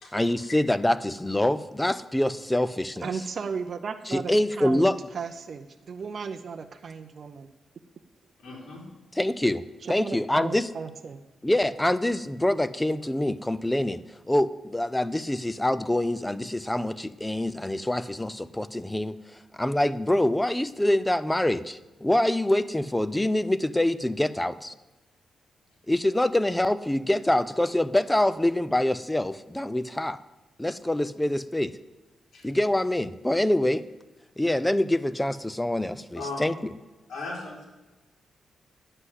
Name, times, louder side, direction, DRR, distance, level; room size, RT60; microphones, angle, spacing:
voice 1, 0.1-3.1 4.1-5.0 9.1-9.6 9.9-10.7 11.4-14.0 14.3-19.2 19.6-24.7 25.9-30.2 30.6-31.7 32.4-33.8 34.4-36.7, left 1 dB, 10° left, 14 dB, 0.4 m, -25 dB
voice 2, 3.0-7.5 9.8-11.2, right 5 dB, 45° right, 7 dB, 0.6 m, -35 dB
voice 3, 8.4-8.8 32.3-32.4 36.1-36.4 37.1-37.6, left 3 dB, 70° left, -4 dB, 3.9 m, -37 dB
9.8 x 7.7 x 8.1 m, 1.1 s
wide cardioid pair, 135°, 0 cm